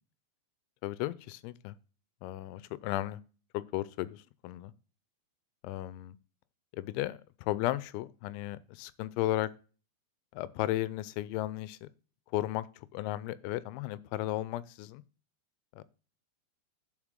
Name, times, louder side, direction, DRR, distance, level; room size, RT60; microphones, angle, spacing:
voice 1, 0.8-1.7 2.2-3.2 3.5-4.7 5.6-6.2 6.7-7.2 7.5-9.5 10.3-11.9 12.3-12.7 12.9-15.0 15.8-15.9, left 15 dB, 85° left, 2.9 m, -34 dB
9.6 x 5.6 x 3.6 m
omnidirectional pair, 5.3 m